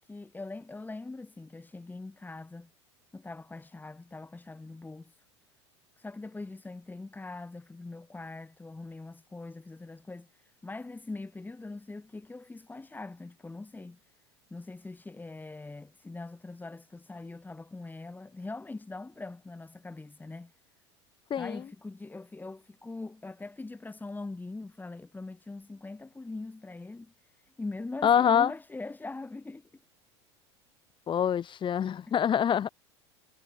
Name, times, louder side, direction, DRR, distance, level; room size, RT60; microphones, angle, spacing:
voice 1, 0.0-2.7 3.1-5.2 6.0-14.0 14.5-20.5 21.4-29.7 32.1-32.2, left 3 dB, 10° left, 7.7 m, -42 dB
voice 2, 21.3-21.6 28.0-28.5 31.1-32.7, left 8 dB, 35° left, 2.6 m, -25 dB
hypercardioid pair, 85°, 15 cm